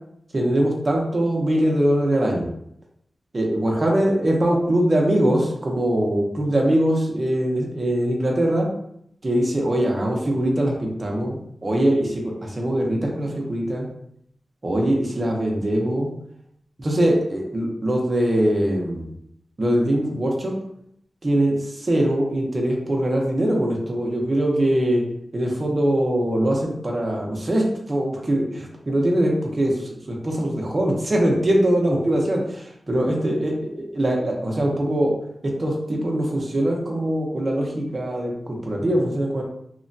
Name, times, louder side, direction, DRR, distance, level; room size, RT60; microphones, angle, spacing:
voice 1, 0.3-2.5 3.3-8.7 9.2-13.8 14.6-16.1 16.8-19.1 19.6-20.5 21.2-25.0 25.3-29.7 30.1-35.1 35.6-38.3 38.7-39.4, right 1 dB, 30° right, -1 dB, 0.6 m, -22 dB
2.9 x 2.2 x 2.6 m, 0.71 s
wide cardioid pair, 145°, 0 cm